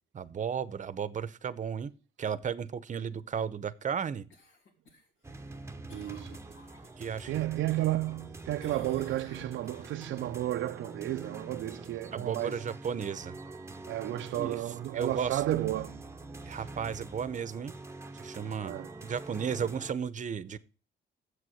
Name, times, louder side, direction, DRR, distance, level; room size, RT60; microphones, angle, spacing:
voice 1, 0.1-1.9 2.2-4.3 7.0-7.3 12.1-13.3 14.3-14.6 14.9-15.4 16.5-17.7 18.2-20.6, right 7 dB, 40° right, 0.8 m, -34 dB
Cough, 4.3-7.3 7.7-8.3 8.6-10.3 14.7-14.8, left 3 dB, 75° left, 2.9 m, -57 dB
sound 1, 5.2-19.9, right 2 dB, 15° right, 0.9 m, -45 dB
voice 2, 5.9-6.4 7.2-12.7 13.9-16.1 16.4-16.6 18.6-18.9, right 14 dB, 75° right, 0.5 m, -32 dB
7.6 x 6.3 x 7.8 m
cardioid pair, 90°, 20 cm